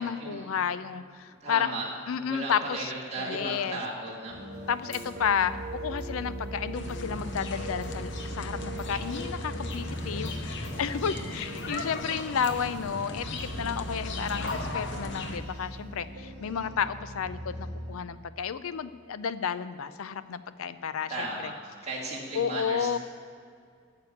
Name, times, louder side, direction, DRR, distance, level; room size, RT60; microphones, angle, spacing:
voice 1, 0.0-1.7 2.1-2.9 3.2-3.8 4.7-21.5 22.3-23.0, left 7 dB, 75° left, 14 dB, 0.5 m, -32 dB
voice 2, 1.4-1.9 2.2-4.4 21.1-21.5 21.8-23.0, right 2 dB, 30° right, -5 dB, 2.0 m, -35 dB
sound 1, 4.3-17.9, right 1 dB, 50° right, 2.1 m, -39 dB
sound 2, 4.5-16.2, equal, 20° left, 3.3 m, -58 dB
sound 3, 6.7-15.4, left 2 dB, 55° left, 0.8 m, -37 dB
9.3 x 6.7 x 8.4 m, 2.2 s
head